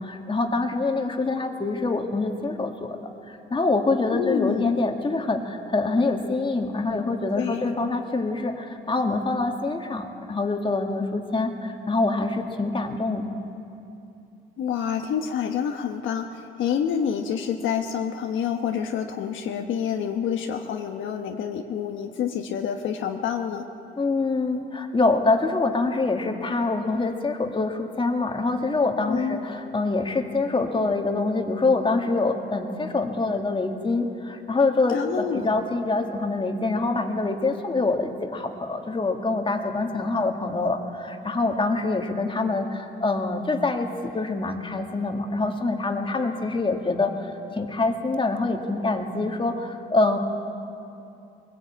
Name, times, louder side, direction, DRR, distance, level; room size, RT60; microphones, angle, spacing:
voice 1, 0.0-13.3 24.0-50.2, left 3 dB, 25° left, 3 dB, 2.0 m, -25 dB
voice 2, 4.1-4.7 7.3-7.7 14.6-23.6 29.1-29.4 34.9-35.5, left 8 dB, 80° left, 4 dB, 1.1 m, -28 dB
22.0 x 15.5 x 8.6 m, 2.7 s
cardioid pair, 90°, 20 cm